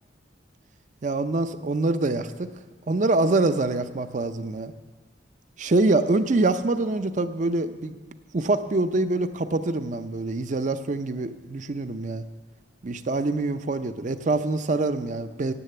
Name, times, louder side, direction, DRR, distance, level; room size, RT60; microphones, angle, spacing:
voice 1, 1.0-2.5 2.9-4.7 5.6-8.0 8.3-12.2 12.8-15.5, right 2 dB, 40° right, 11 dB, 0.5 m, -25 dB
9.9 x 8.2 x 7.7 m, 1.4 s
head